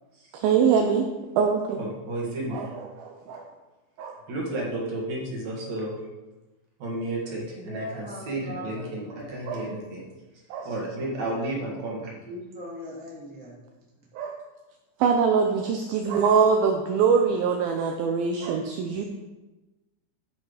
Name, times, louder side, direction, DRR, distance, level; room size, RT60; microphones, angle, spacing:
voice 1, 0.3-1.1 1.3-1.8 2.5-3.5 4.0-4.2 9.5-9.6 10.5-10.7 14.1-14.4 15.0-19.0, right 6 dB, 85° right, 3 dB, 2.1 m, -23 dB
voice 2, 1.8-2.7 4.3-6.1 6.8-10.0 10.6-12.1, right 1 dB, 50° right, -3 dB, 2.4 m, -32 dB
voice 3, 7.2-9.3 11.0-11.1 12.2-13.6, equal, 5° left, -6 dB, 0.7 m, -40 dB
10.5 x 5.5 x 5.0 m, 1.1 s
omnidirectional pair, 5.1 m